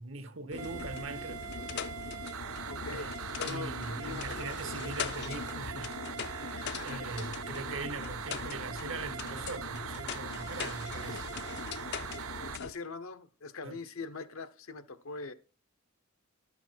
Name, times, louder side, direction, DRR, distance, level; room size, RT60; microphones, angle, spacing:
voice 1, 0.0-1.5 2.9-3.1 3.4-11.3 13.6-13.8, right 3 dB, 65° right, 1.2 m, -41 dB
sound 1, 0.5-12.7, left 6 dB, 55° left, 0.6 m, -41 dB
sound 2, 0.6-12.6, right 9 dB, 90° right, 0.5 m, -41 dB
voice 2, 2.7-3.1 3.4-5.0 6.5-7.1 12.6-15.3, left 4 dB, 80° left, 1.0 m, -42 dB
11.5 x 7.1 x 4.5 m
head